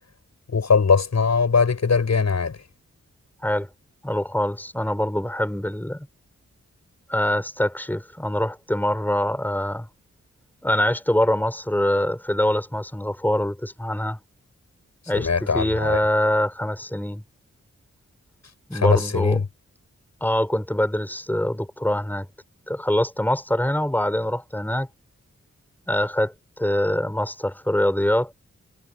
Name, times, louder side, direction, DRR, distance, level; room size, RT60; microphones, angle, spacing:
voice 1, 0.5-2.6 15.1-16.0 18.7-19.4, left 5 dB, 65° left, 7.9 m, -20 dB
voice 2, 4.0-6.1 7.1-9.9 10.6-14.2 15.1-17.2 18.7-19.4 20.2-22.3 22.7-24.9 25.9-28.3, left 1 dB, 5° left, 5.6 m, -24 dB
wide cardioid pair, 110°, 29 cm